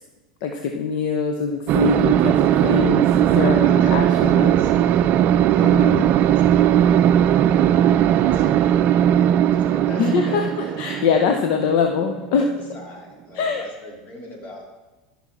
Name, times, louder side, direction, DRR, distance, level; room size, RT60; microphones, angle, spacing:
voice 1, 0.4-4.7 5.6-6.1 10.0-12.4 13.3-13.6, left 6 dB, 60° left, 4 dB, 0.9 m, -23 dB
sound 1, 1.7-12.8, right 10 dB, 45° right, 0.4 m, -18 dB
voice 2, 3.6-5.1 5.5-11.3 11.8-11.9 12.4-14.6, equal, 40° left, -1 dB, 3.1 m, -40 dB
13.0 x 5.8 x 4.2 m, 1.1 s
hypercardioid pair, 105°, 4 cm